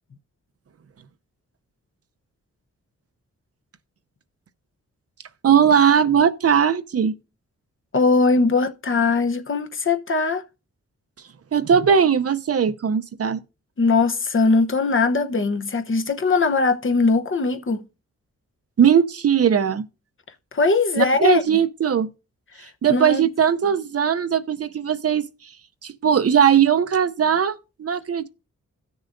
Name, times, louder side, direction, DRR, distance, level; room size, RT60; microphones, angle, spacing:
voice 1, 5.4-7.1 11.5-13.4 18.8-19.9 21.0-22.1 22.8-25.3 25.8-28.3, right 8 dB, 50° right, 0.6 m, -19 dB
voice 2, 7.9-10.4 13.8-17.8 20.5-21.6 22.9-23.3, left 3 dB, 45° left, 0.9 m, -20 dB
16.5 x 6.5 x 2.6 m
cardioid pair, 70°, 30 cm